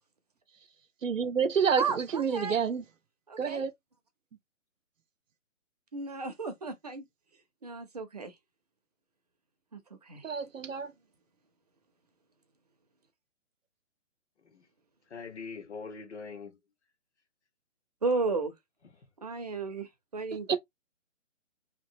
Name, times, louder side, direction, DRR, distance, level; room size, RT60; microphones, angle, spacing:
voice 1, 1.0-2.8 3.4-3.7 10.2-10.9 20.5-20.6, right 6 dB, 85° right, 0.6 m, -28 dB
voice 2, 1.8-2.6 3.3-3.6 5.9-7.0 7.6-8.3 9.7-10.3 18.0-18.5 19.2-20.6, right 4 dB, 35° right, 0.5 m, -34 dB
voice 3, 15.1-16.6 18.8-19.1, left 5 dB, 60° left, 1.0 m, -43 dB
2.9 x 2.8 x 2.6 m
figure-of-eight pair, 145°, 38 cm